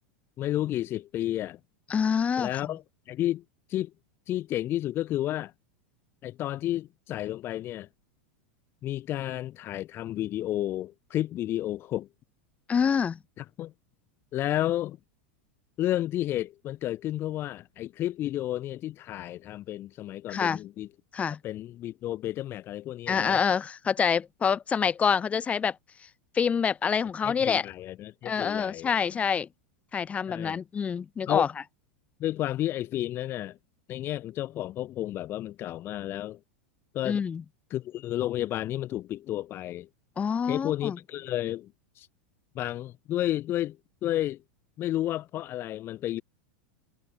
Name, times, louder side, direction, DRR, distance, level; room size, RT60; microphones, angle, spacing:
voice 1, 0.4-1.6 2.4-3.4 3.7-3.9 4.3-5.5 6.2-7.9 8.8-12.1 13.4-13.7 14.3-15.0 15.8-20.9 21.4-23.4 27.2-28.9 30.3-30.6 31.3-31.5 32.2-33.6 33.9-36.4 36.9-37.2 37.7-39.9 40.5-41.7 42.0-42.1 42.5-44.4 44.8-46.2, left 13 dB, 40° left, 3.9 m, -31 dB
voice 2, 1.9-2.8 12.7-13.2 20.3-20.6 21.1-21.4 23.1-25.8 26.3-27.7 28.2-29.5 29.9-31.5 37.0-37.4 40.2-41.0, left 6 dB, 20° left, 1.9 m, -26 dB
hypercardioid pair, 120°, 6 cm